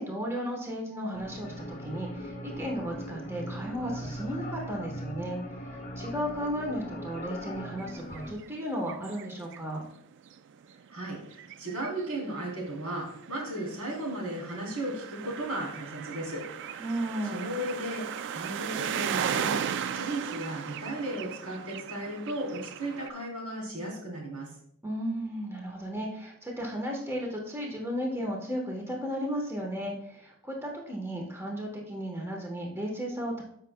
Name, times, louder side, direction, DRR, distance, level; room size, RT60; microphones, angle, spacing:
voice 1, 0.0-5.4 6.0-9.8 16.8-17.5 24.8-33.4, equal, 10° right, 0 dB, 1.1 m, -34 dB
sound 1, 1.1-8.3, equal, 35° left, 0.8 m, -39 dB
sound 2, 7.8-9.6 9.9-10.0 10.3-23.1, right 8 dB, 55° right, 0.3 m, -37 dB
voice 2, 10.9-16.8 17.3-18.0 18.3-19.6 19.9-24.5, right 1 dB, 85° right, -2 dB, 3.4 m, -35 dB
13.0 x 5.6 x 2.2 m, 0.72 s
head